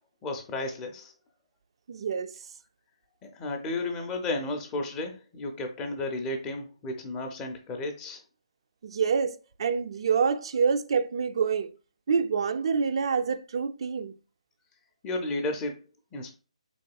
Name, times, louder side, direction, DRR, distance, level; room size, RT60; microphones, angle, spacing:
voice 1, 0.2-1.1 3.2-8.2 15.0-15.7 16.1-16.3, left 2 dB, 15° left, 0.5 m, -33 dB
voice 2, 1.9-2.3 8.8-11.7 12.1-14.1, right 6 dB, 50° right, 0.3 m, -27 dB
3.5 x 2.7 x 2.3 m
figure-of-eight pair, 150°, 3 cm